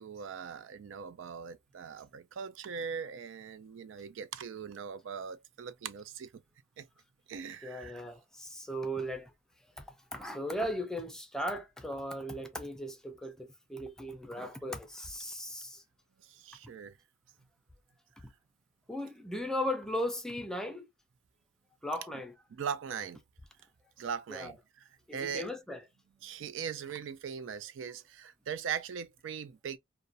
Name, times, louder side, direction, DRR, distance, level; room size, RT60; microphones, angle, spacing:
voice 1, 0.0-6.4 6.8-6.9 7.3-8.0 16.2-16.9 22.5-23.2 24.0-25.5 26.2-29.8, right 7 dB, 75° right, 0.4 m, -40 dB
voice 2, 7.6-9.3 9.8-9.9 10.1-15.8 18.9-20.9 21.8-22.3 24.3-24.5 25.1-25.8, equal, 5° left, 0.4 m, -37 dB
2.4 x 2.1 x 2.6 m
head